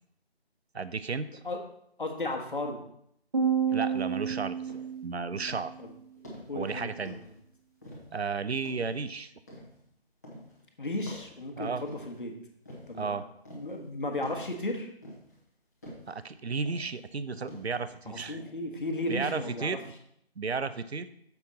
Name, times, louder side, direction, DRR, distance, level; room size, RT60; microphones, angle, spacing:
voice 1, 0.7-1.4 3.7-4.6 5.0-5.7 6.5-7.2 8.1-9.3 11.6-11.8 12.9-13.3 16.1-18.4 19.1-19.8 20.4-21.1, right 4 dB, 75° right, 13 dB, 0.6 m, -33 dB
voice 2, 2.0-2.8 3.7-3.8 5.8-5.9 6.5-7.1 10.8-12.3 12.9-13.2 13.5-14.9 18.1-19.7, left 2 dB, 50° left, 3 dB, 1.3 m, -34 dB
sound 1, 3.3-5.8, right 7 dB, 35° right, 1.2 m, -30 dB
sound 2, 3.9-4.2 4.7-5.0 5.5-5.8 6.2-6.6 7.0-7.4 7.8-8.2 8.6-9.0 9.5-9.8 10.2-10.6 11.1-12.2 12.6-13.0 13.4-13.8 14.2-14.6 15.0-15.4 15.8-16.1 16.7-17.0 17.5-17.9 18.3-18.5, equal, 15° left, 1.0 m, -47 dB
6.9 x 5.8 x 4.1 m, 0.71 s
figure-of-eight pair, 160°, 33 cm